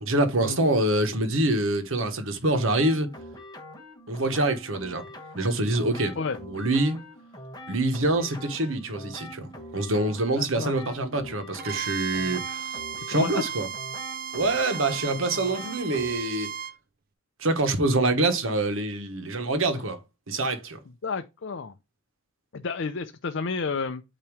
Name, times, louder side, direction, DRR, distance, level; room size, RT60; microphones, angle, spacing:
voice 1, 0.0-3.1 4.1-5.0 5.3-6.2 6.4-7.0 7.7-12.7 13.1-13.7 14.3-16.5 17.4-20.0 20.3-20.8, right 2 dB, 70° right, 1.3 m, -25 dB
sound 1, 2.5-16.1, left 1 dB, 20° left, 1.4 m, -44 dB
voice 2, 10.4-10.7 13.1-13.4 21.0-21.7 22.5-24.0, left 4 dB, 55° left, 0.5 m, -31 dB
Bowed string instrument, 11.6-16.8, right 7 dB, 45° right, 0.5 m, -35 dB
8.8 x 3.0 x 4.7 m
head